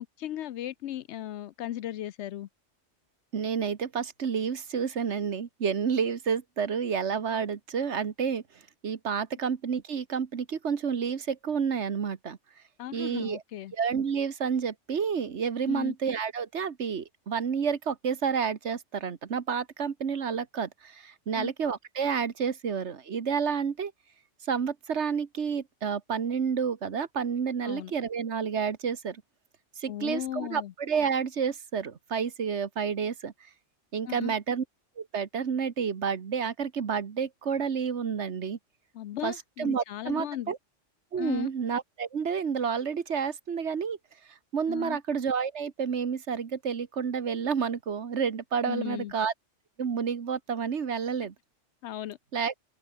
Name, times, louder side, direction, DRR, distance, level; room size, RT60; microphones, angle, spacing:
voice 1, 0.0-2.5 12.8-13.7 15.7-15.9 21.3-21.5 27.6-27.9 29.9-30.7 34.0-34.3 38.9-40.5 41.2-41.5 44.7-45.0 48.6-49.1 51.8-52.2, left 12 dB, 70° left, 0.8 m, -36 dB
voice 2, 3.3-8.4 8.8-12.4 12.9-13.4 13.7-23.9 24.5-29.2 29.8-33.3 33.9-34.6 35.0-38.6 39.2-40.6 41.1-44.0 44.3-49.3 49.8-51.3 52.3-52.5, right 6 dB, 65° right, 1.6 m, -30 dB
open air
omnidirectional pair, 1.3 m